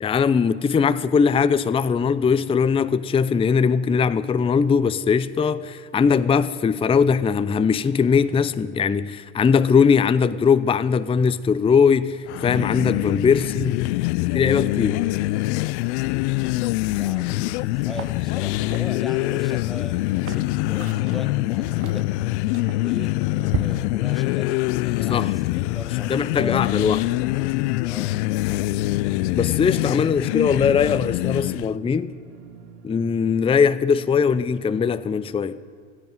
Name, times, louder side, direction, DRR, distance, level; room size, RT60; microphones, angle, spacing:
voice 1, 0.0-13.8 14.3-15.0 25.1-25.3 26.1-27.0 29.3-32.1 32.8-35.6, left 6 dB, 15° left, 0.5 m, -20 dB
sound 1, 12.3-31.7, left 19 dB, 75° left, 0.5 m, -24 dB
voice 2, 17.0-22.1 22.7-23.2 23.5-27.1 27.8-28.2, equal, ahead, 1.2 m, -39 dB
sound 2, 17.4-17.6 17.9-23.6, right 9 dB, 40° right, 0.9 m, -36 dB
sound 3, 28.6-34.7, right 4 dB, 75° right, 1.6 m, -44 dB
13.5 x 10.5 x 9.1 m
hypercardioid pair, 80°, 35 cm